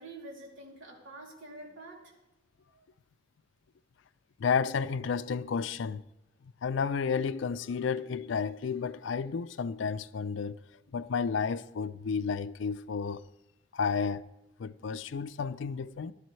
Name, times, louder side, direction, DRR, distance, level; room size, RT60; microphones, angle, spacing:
voice 1, 0.0-2.2 2.7-2.8, right 2 dB, 85° right, 2.9 m, -47 dB
voice 2, 4.4-6.0 6.6-10.6 10.9-13.2 13.7-14.3 14.6-16.1, left 5 dB, 75° left, 0.4 m, -31 dB
15.5 x 12.0 x 3.2 m
head